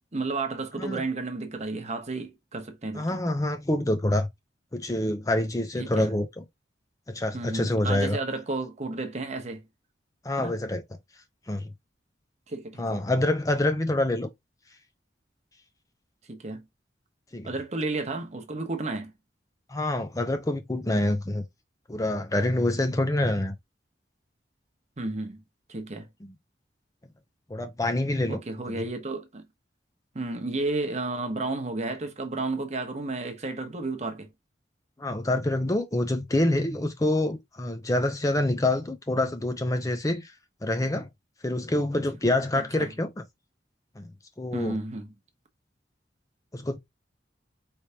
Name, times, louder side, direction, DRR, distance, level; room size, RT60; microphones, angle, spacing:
voice 1, 0.0-3.2 5.8-6.1 7.3-9.7 10.4-10.6 12.5-13.0 16.3-16.6 17.4-19.1 25.0-25.4 25.7-26.1 28.3-29.5 30.1-34.3 42.5-42.9 44.5-45.1, right 2 dB, 40° right, 0.9 m, -32 dB
voice 2, 2.9-4.3 4.7-6.4 7.1-8.2 10.2-10.8 11.5-11.6 12.8-14.3 17.3-17.5 19.7-21.4 21.9-23.6 27.5-28.4 28.7-28.9 35.0-40.3 40.6-41.1 41.4-43.2 44.0-44.1 44.4-44.8 46.5-46.8, left 1 dB, 20° left, 0.6 m, -26 dB
4.7 x 3.3 x 2.8 m
head